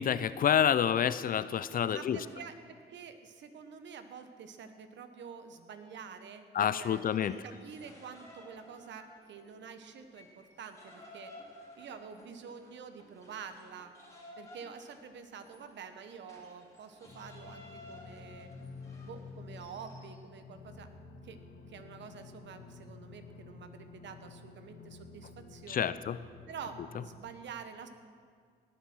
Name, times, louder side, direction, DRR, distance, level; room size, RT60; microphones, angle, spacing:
voice 1, 0.0-2.2 6.5-7.3 25.7-26.2, left 9 dB, 45° left, 15 dB, 0.4 m, -28 dB
voice 2, 1.8-2.6 2.9-11.3 11.8-13.9 14.4-18.5 19.0-20.9 21.2-21.4 21.7-25.9 26.5-27.9, right 6 dB, 65° right, 9 dB, 1.1 m, -47 dB
sound 1, 6.9-9.6 9.9-20.2, left 1 dB, 15° left, 3.0 m, -55 dB
sound 2, 17.0-27.2, left 4 dB, 65° left, 2.2 m, -51 dB
18.5 x 7.0 x 6.2 m, 2.1 s
cardioid pair, 90°, 20 cm